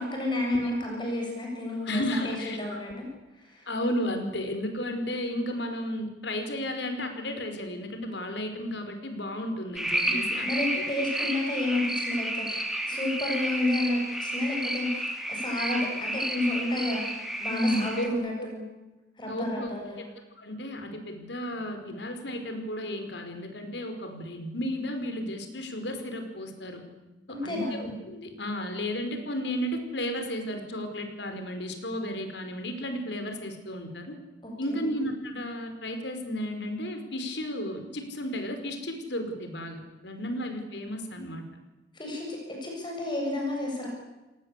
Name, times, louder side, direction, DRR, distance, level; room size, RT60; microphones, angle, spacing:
voice 1, 0.1-3.1 3.4-3.7 10.0-12.6 12.8-17.1 17.4-18.6 19.2-20.0 27.3-27.8 34.4-34.8 41.9-43.9, left 1 dB, 25° left, 0 dB, 7.5 m, -31 dB
voice 2, 1.8-2.9 3.7-10.9 11.1-11.3 17.5-18.1 18.4-18.5 19.3-19.7 20.4-26.8 27.3-34.2 34.6-41.4, equal, 70° left, 6 dB, 5.2 m, -33 dB
sound 1, 9.8-18.1, right 1 dB, ahead, 2.9 m, -31 dB
29.5 x 19.0 x 8.4 m, 1.0 s
head